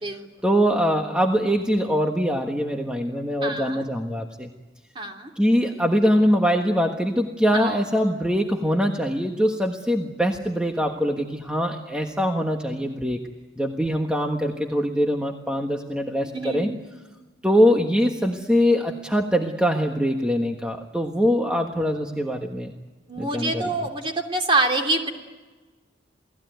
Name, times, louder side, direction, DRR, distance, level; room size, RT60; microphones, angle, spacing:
voice 1, 0.4-4.5 5.4-13.2 13.6-16.7 17.4-22.7 23.2-23.6, equal, 5° right, 2 dB, 1.4 m, -23 dB
voice 2, 3.4-3.8 4.9-5.3 7.5-7.8 16.3-16.8 23.1-25.1, right 2 dB, 30° right, 3 dB, 2.9 m, -26 dB
29.0 x 19.0 x 9.3 m, 1.3 s
head